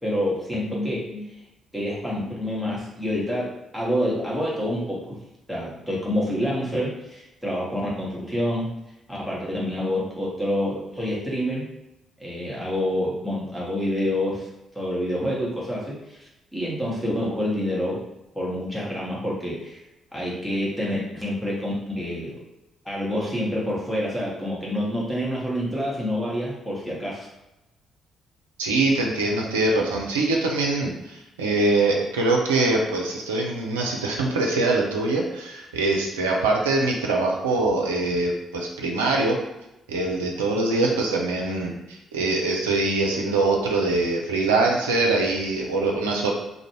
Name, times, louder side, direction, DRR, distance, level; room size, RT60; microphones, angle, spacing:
voice 1, 0.0-1.3 1.7-5.2 5.5-8.7 9.1-11.7 12.2-14.5 14.7-18.0 18.3-19.8 20.1-22.4 22.8-27.3, equal, ahead, -6 dB, 1.1 m, -27 dB
voice 2, 28.6-39.4 39.9-46.3, right 2 dB, 75° right, -1 dB, 0.4 m, -23 dB
2.5 x 2.0 x 3.0 m, 0.93 s
figure-of-eight pair, 40°, 0 cm